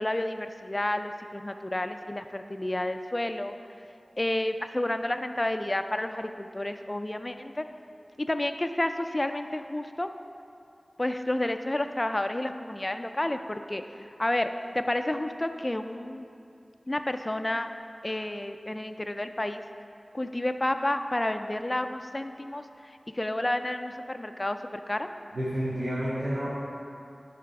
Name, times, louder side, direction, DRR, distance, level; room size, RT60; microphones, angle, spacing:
voice 1, 0.0-3.5 4.2-7.7 8.2-10.1 11.0-14.5 14.7-16.3 16.9-17.7 18.0-19.6 20.1-25.1, left 1 dB, 30° left, 8 dB, 0.4 m, -30 dB
voice 2, 25.3-26.5, equal, 85° right, -12 dB, 2.0 m, -29 dB
11.0 x 4.1 x 4.7 m, 2.6 s
wide cardioid pair, 55°, 0 cm